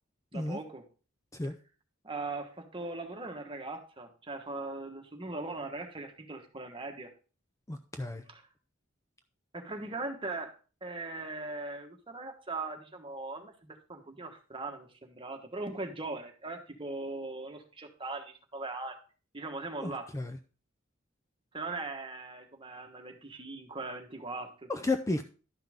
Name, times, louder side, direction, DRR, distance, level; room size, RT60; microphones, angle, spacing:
voice 1, 0.3-0.8 2.0-7.1 8.3-8.5 9.5-10.5 10.8-19.0 19.3-20.1 21.5-24.7, right 2 dB, 25° right, 4 dB, 1.3 m, -40 dB
voice 2, 7.7-8.2 19.8-20.3 24.7-25.2, left 2 dB, 15° left, 8 dB, 0.5 m, -32 dB
11.5 x 5.8 x 3.5 m, 0.36 s
head